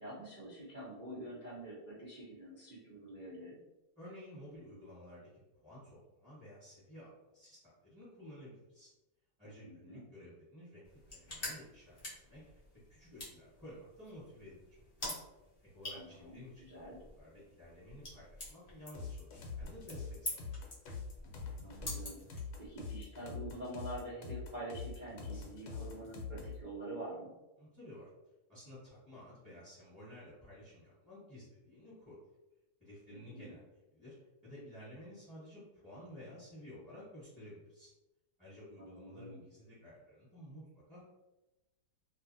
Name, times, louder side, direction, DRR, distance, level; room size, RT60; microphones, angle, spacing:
voice 1, 0.0-3.6 9.6-10.1 15.9-17.0 21.6-27.3 33.1-33.5 38.8-39.4, right 1 dB, 60° right, -10 dB, 0.4 m, -46 dB
voice 2, 4.0-5.3 5.6-8.9 9.4-12.4 12.9-15.1 15.7-20.5 27.6-28.1 28.5-32.1 32.8-34.1 34.4-37.9 38.4-41.1, left 1 dB, 5° right, -11 dB, 1.1 m, -53 dB
sound 1, 10.8-22.9, left 1 dB, 40° left, 0.6 m, -48 dB
sound 2, 18.9-26.6, left 4 dB, 75° left, 1.2 m, -44 dB
2.6 x 2.5 x 2.6 m, 1.0 s
omnidirectional pair, 1.8 m